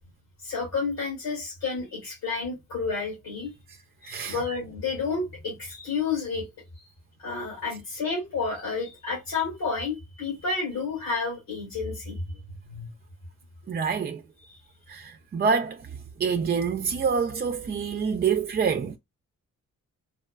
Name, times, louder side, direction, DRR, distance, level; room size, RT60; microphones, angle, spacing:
voice 1, 0.4-3.5 4.0-6.5 6.8-6.9 7.2-12.2 12.5-12.9, left 4 dB, 75° left, 2.2 m, -30 dB
voice 2, 4.0-4.4 13.7-14.2 14.9-19.0, right 6 dB, 30° right, 0.4 m, -27 dB
3.9 x 2.1 x 2.2 m
hypercardioid pair, 40°, 36 cm